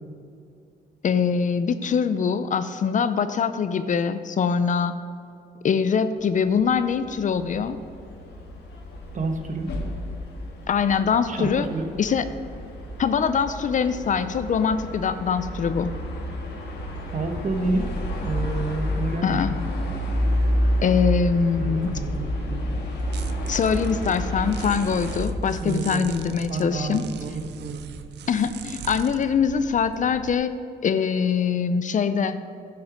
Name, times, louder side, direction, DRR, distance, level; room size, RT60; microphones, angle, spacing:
voice 1, 1.0-5.0 5.6-7.8 10.7-11.7 12.0-12.3 13.0-15.9 19.2-19.5 20.8-22.0 23.5-27.0 28.3-30.5 30.8-32.4, left 6 dB, 45° left, 12 dB, 0.5 m, -23 dB
sound 1, 6.4-25.2, equal, 75° left, 1.5 m, -30 dB
voice 2, 9.1-9.7 11.3-11.8 17.1-17.9 18.2-19.6 21.6-22.6 25.6-26.1 26.5-27.8, right 3 dB, 45° right, 5 dB, 1.0 m, -29 dB
sound 2, 21.8-30.3, right 9 dB, 75° right, 0.5 m, -41 dB
11.0 x 5.8 x 5.1 m, 2.4 s
cardioid pair, 90°, 18 cm